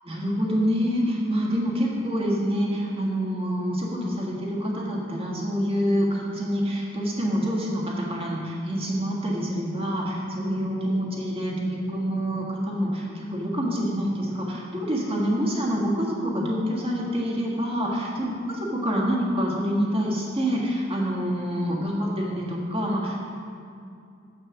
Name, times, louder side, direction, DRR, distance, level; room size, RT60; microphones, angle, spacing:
voice 1, 0.0-23.2, equal, 30° right, -3 dB, 1.6 m, -26 dB
7.3 x 6.6 x 6.3 m, 2.4 s
head